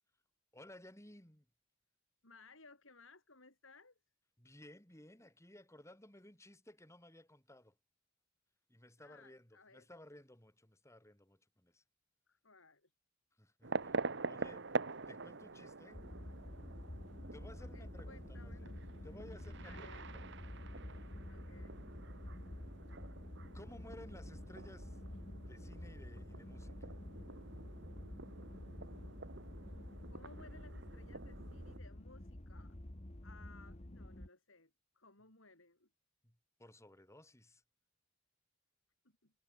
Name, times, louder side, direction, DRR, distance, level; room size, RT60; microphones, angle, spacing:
voice 1, 0.5-1.4 4.4-7.7 8.7-11.8 13.4-14.7 15.1-16.3 17.3-18.7 19.0-20.2 20.9-21.0 23.5-25.0 25.5-27.0 36.2-37.6, left 1 dB, 15° left, 4.4 m, -58 dB
voice 2, 2.2-4.0 9.0-9.9 12.3-12.9 17.6-18.7 19.6-20.1 21.3-21.9 30.1-32.8 33.2-35.9 39.0-39.3, left 3 dB, 75° left, 7.3 m, -61 dB
sound 1, 13.6-31.8, right 3 dB, 60° right, 1.4 m, -46 dB
sound 2, 15.9-34.3, left 1 dB, 30° left, 1.4 m, -49 dB
head